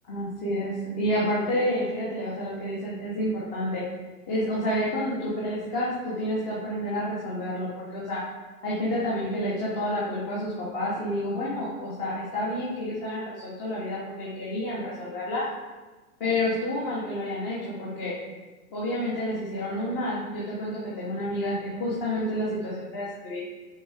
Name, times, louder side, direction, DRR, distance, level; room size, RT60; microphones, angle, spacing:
voice 1, 0.1-3.8 4.3-8.2 8.6-15.4 16.2-18.1 18.7-23.4, left 1 dB, 40° left, -7 dB, 2.5 m, -29 dB
7.8 x 5.1 x 4.8 m, 1.2 s
figure-of-eight pair, 110°, 47 cm